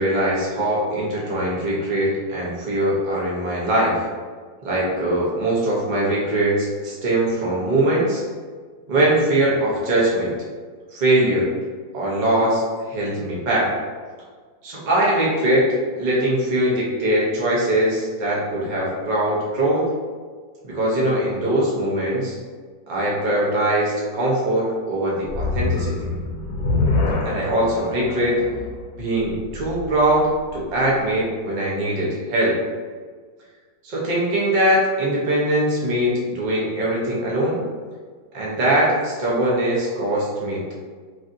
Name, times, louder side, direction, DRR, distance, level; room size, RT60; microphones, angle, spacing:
voice 1, 0.0-4.0 4.6-8.2 8.9-10.3 10.9-11.5 11.9-13.7 14.6-15.7 16.0-19.8 20.6-22.4 22.9-25.9 27.2-28.4 29.0-32.6 33.8-37.6 38.3-40.7, right 1 dB, 75° right, -5 dB, 0.4 m, -21 dB
sound 1, 25.2-30.5, left 3 dB, 80° left, 1.2 m, -26 dB
3.2 x 2.6 x 2.5 m, 1.5 s
omnidirectional pair, 1.9 m